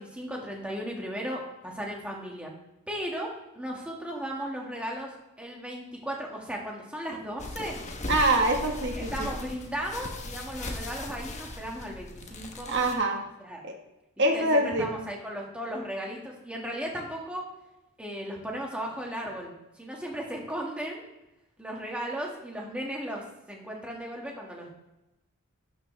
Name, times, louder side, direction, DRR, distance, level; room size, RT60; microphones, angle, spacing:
voice 1, 0.0-2.5 2.9-5.1 5.4-7.8 8.9-12.7 13.4-13.6 14.3-17.4 18.0-19.5 19.8-21.0 21.6-24.7, equal, 5° right, -2 dB, 2.0 m, -36 dB
sound 1, 7.4-12.9, left 2 dB, 30° left, 1.1 m, -38 dB
voice 2, 8.1-9.3 12.7-13.2 13.6-13.7 14.2-14.9, right 1 dB, 55° right, 3 dB, 1.5 m, -24 dB
12.0 x 7.5 x 3.4 m, 0.96 s
head